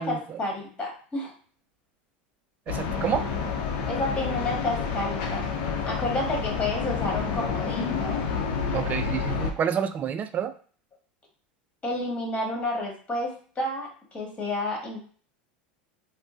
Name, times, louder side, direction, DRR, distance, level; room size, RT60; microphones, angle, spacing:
voice 1, 0.0-1.3 3.8-5.5 5.8-8.2 11.8-15.0, left 2 dB, 25° left, -1 dB, 1.5 m, -30 dB
sound 1, 2.7-9.5, left 5 dB, 70° left, 0.7 m, -29 dB
voice 2, 2.7-3.2 8.7-10.5, right 8 dB, 35° right, 10 dB, 0.4 m, -28 dB
3.7 x 2.1 x 2.6 m, 0.43 s
hypercardioid pair, 105°, 5 cm